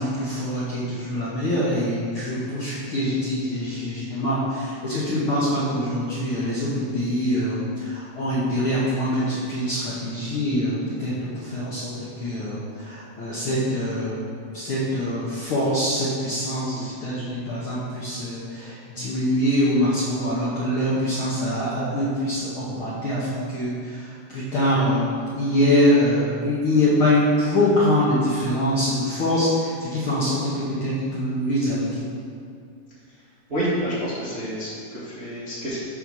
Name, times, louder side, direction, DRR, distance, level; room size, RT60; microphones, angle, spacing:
voice 1, 0.0-14.2 14.5-32.0, left 1 dB, 65° left, -8 dB, 1.4 m, -24 dB
voice 2, 33.5-35.8, equal, 40° right, -10 dB, 0.8 m, -28 dB
7.0 x 4.4 x 6.2 m, 2.3 s
omnidirectional pair, 3.7 m